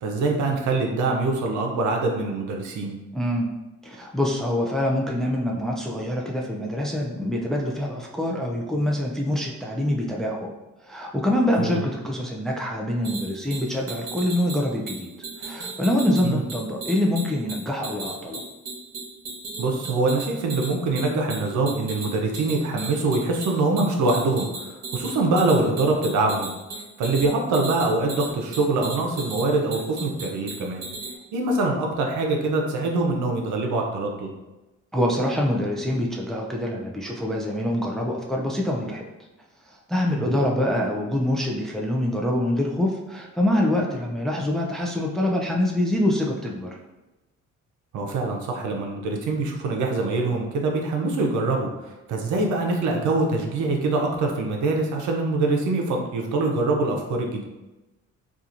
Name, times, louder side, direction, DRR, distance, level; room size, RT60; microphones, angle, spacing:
voice 1, 0.0-3.0 11.6-11.8 16.2-16.4 19.6-26.5 27.0-30.9 31.3-34.3 40.1-40.3 47.9-57.4, right 3 dB, 75° right, 1 dB, 0.6 m, -24 dB
voice 2, 3.1-3.5 3.8-10.5 10.8-15.1 15.4-18.4 34.9-39.0 39.7-46.8, left 1 dB, ahead, -1 dB, 0.4 m, -25 dB
sound 1, 13.0-31.2, right 3 dB, 55° right, 1.0 m, -37 dB
2.8 x 2.4 x 2.5 m, 1.0 s
cardioid pair, 90°, 30 cm